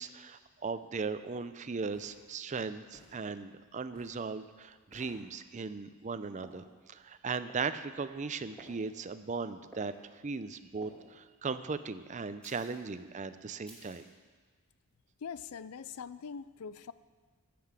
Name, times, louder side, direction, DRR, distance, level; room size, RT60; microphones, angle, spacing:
voice 1, 0.0-9.9 10.2-14.0, right 4 dB, 35° right, 12 dB, 0.5 m, -38 dB
sound 1, 1.2-1.3 1.9-2.2 2.9-3.2 3.9-4.2 4.9-5.2 6.4-6.7 7.5-7.7 8.6-8.9 9.7-9.9 10.8-11.0 12.4-12.8 13.7-14.1, right 1 dB, 5° left, 2.8 m, -54 dB
voice 2, 15.2-16.9, left 6 dB, 80° left, 15 dB, 0.5 m, -43 dB
13.5 x 7.7 x 7.4 m, 1.5 s
head